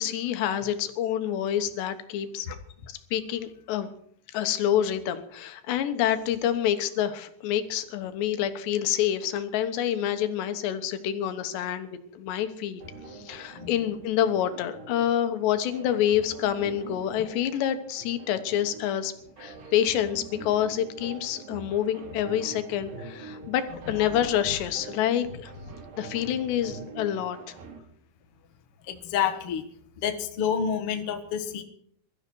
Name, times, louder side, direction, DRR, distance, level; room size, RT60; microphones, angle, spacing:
voice 1, 0.0-2.5 3.1-3.9 4.3-12.8 13.1-19.1 19.4-25.5 26.0-27.5, left 10 dB, 85° left, 9 dB, 3.4 m, -27 dB
sound 1, 12.8-27.8, right 4 dB, 75° right, 4.3 m, -45 dB
voice 2, 23.9-24.3 28.8-29.6 30.0-31.6, left 8 dB, 55° left, 6 dB, 1.7 m, -29 dB
22.0 x 13.5 x 4.6 m, 0.68 s
omnidirectional pair, 4.8 m